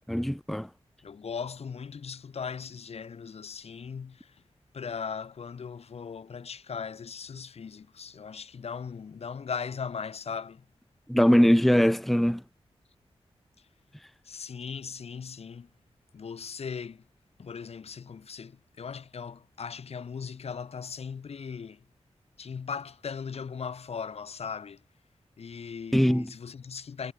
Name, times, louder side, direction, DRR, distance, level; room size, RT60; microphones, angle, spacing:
voice 1, 0.1-0.7 11.1-12.4 25.9-26.3, equal, ahead, 0.9 m, -21 dB
voice 2, 1.0-4.4 4.7-10.7 14.2-15.7 16.1-17.0 17.4-21.9 22.4-24.8 25.4-27.1, left 6 dB, 75° left, 4.2 m, -38 dB
wide cardioid pair, 110°, 11 cm